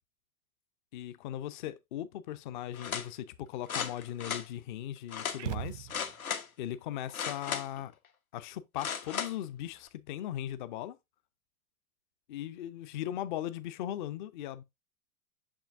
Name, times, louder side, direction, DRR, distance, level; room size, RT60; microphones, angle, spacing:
voice 1, 0.9-5.9 6.6-7.9 8.3-11.0 12.3-14.6, left 12 dB, 35° left, 0.6 m, -38 dB
sound 1, 2.7-3.1 3.7-4.5 5.1-5.4 5.9-6.5 7.1-7.8 8.8-9.3 9.9-10.0, left 7 dB, 75° left, 1.2 m, -36 dB
sound 2, 5.4-6.4, right 11 dB, 55° right, 0.5 m, -38 dB
6.3 x 6.2 x 2.5 m
figure-of-eight pair, 100°, 43 cm